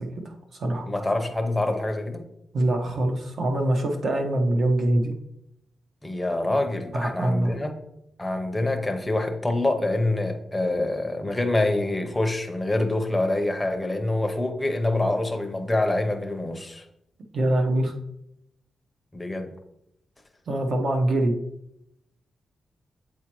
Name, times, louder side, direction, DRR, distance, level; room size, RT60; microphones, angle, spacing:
voice 1, 0.0-0.9 2.5-5.1 6.9-7.5 17.3-17.9 20.5-21.3, right 1 dB, 60° right, 3 dB, 0.9 m, -24 dB
voice 2, 0.9-2.2 6.0-7.7 8.2-16.8 19.1-19.5, left 2 dB, 10° left, 4 dB, 0.6 m, -26 dB
7.5 x 4.3 x 3.0 m, 0.81 s
wide cardioid pair, 160°, 0 cm